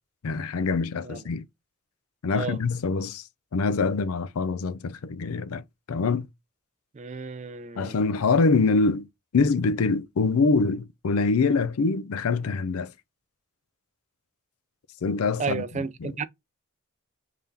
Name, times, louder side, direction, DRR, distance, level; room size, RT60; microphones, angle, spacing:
voice 1, 0.2-1.5 2.2-3.2 3.5-6.3 7.8-9.1 9.3-12.9 15.0-16.1, left 4 dB, 90° left, 0.5 m, -25 dB
voice 2, 6.9-7.9 15.4-16.3, right 5 dB, 35° right, 0.4 m, -32 dB
3.6 x 3.5 x 2.7 m
head